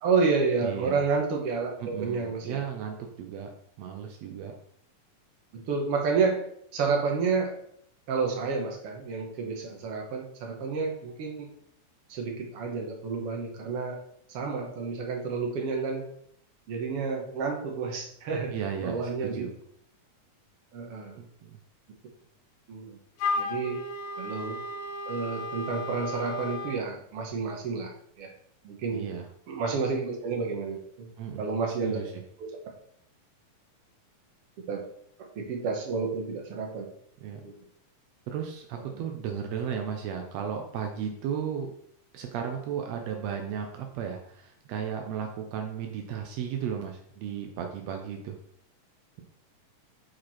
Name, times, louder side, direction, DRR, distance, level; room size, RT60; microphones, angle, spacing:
voice 1, 0.0-2.6 5.5-7.6 8.1-11.5 12.1-14.0 14.3-16.1 16.7-18.5 18.8-19.5 20.7-21.2 22.7-23.0 23.3-23.9 24.2-24.6 25.1-28.3 28.6-29.0 29.5-31.1 31.4-32.0 32.4-32.6 34.6-34.8 35.3-36.9 37.4-37.5 38.9-39.0, right 4 dB, 60° right, 1 dB, 1.7 m, -30 dB
voice 2, 0.6-1.0 1.8-3.5 3.8-4.5 18.5-19.5 21.1-21.6 28.9-29.3 31.2-31.5 31.8-32.1 37.2-37.4 38.3-41.7 42.1-48.4, right 8 dB, 80° right, 3 dB, 1.5 m, -35 dB
Wind instrument woodwind instrument, 23.2-26.9, left 2 dB, 85° left, 2.3 m, -34 dB
6.0 x 5.2 x 4.3 m, 0.68 s
omnidirectional pair, 3.9 m